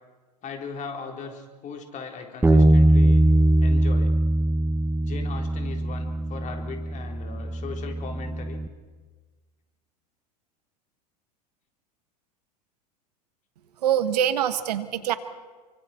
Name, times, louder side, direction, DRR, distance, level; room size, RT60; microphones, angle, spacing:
voice 1, 0.4-3.2 3.6-4.1 5.0-8.6, left 5 dB, 35° left, 3 dB, 4.0 m, -38 dB
Bass guitar, 2.4-8.7, right 1 dB, 10° right, 1.4 m, -21 dB
voice 2, 13.8-15.1, right 10 dB, 75° right, 12 dB, 1.5 m, -24 dB
29.0 x 24.5 x 4.5 m, 1.3 s
hypercardioid pair, 85°, 21 cm